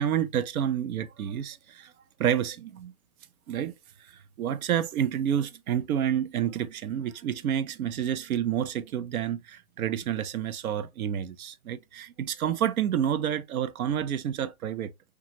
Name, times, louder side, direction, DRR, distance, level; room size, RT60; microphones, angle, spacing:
voice 1, 0.0-1.9 2.2-2.9 3.5-3.7 4.4-14.9, right 9 dB, 85° right, 0.6 m, -29 dB
2.9 x 2.4 x 2.5 m
hypercardioid pair, 170°, 42 cm